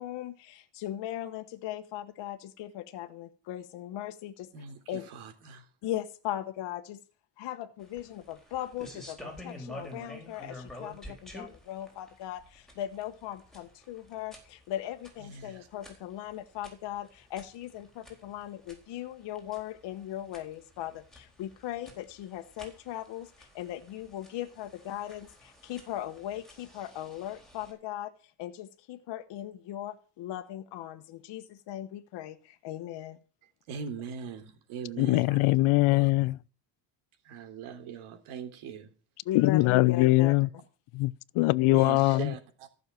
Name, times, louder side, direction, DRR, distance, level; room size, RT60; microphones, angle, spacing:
voice 1, 0.0-4.5 4.9-5.1 5.8-7.0 7.4-33.2 39.2-40.3, left 12 dB, 60° left, 1.2 m, -38 dB
voice 2, 4.5-5.7 15.2-15.7 33.7-35.5 35.9-36.1 37.2-38.9 39.9-40.1 41.7-42.7, right 7 dB, 90° right, 3.5 m, -41 dB
sound 1, 7.8-27.7, left 1 dB, ahead, 4.1 m, -50 dB
voice 3, 35.0-36.4 39.3-40.5 40.9-42.3, left 20 dB, 85° left, 0.8 m, -22 dB
15.0 x 6.6 x 9.0 m
cardioid pair, 165°, 48 cm